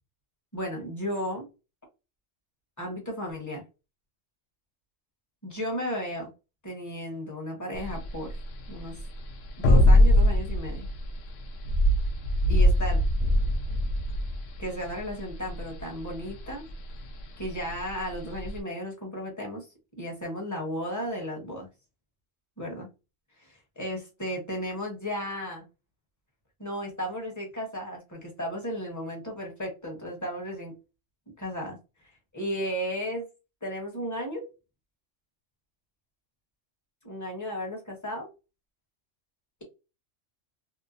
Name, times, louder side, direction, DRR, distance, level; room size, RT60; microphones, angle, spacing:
voice 1, 0.5-1.5 2.8-3.6 5.4-6.3 6.6-8.4 8.7-9.0 9.6-10.9 12.5-13.0 14.6-16.7 17.4-19.6 19.9-21.7 22.6-22.9 23.4-25.6 26.6-30.7 31.4-31.8 32.3-33.2 33.6-34.4 37.0-38.3, equal, 15° left, 0 dB, 1.0 m, -34 dB
sound 1, 7.8-18.6, left 1 dB, 90° left, 1.0 m, -23 dB
2.9 x 2.1 x 2.5 m, 0.28 s
omnidirectional pair, 1.3 m